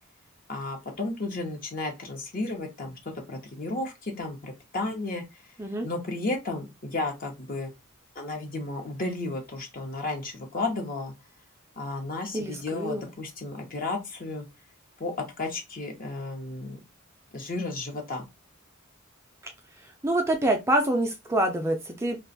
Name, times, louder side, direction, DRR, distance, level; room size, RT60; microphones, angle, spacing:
voice 1, 0.5-3.0 3.3-5.2 5.8-7.7 8.1-11.1 11.8-14.4 15.0-16.8 17.3-18.2, left 2 dB, 45° left, 0.9 m, -33 dB
voice 2, 12.3-13.1 19.8-22.2, right 1 dB, 15° right, 0.4 m, -26 dB
2.5 x 2.3 x 3.9 m
head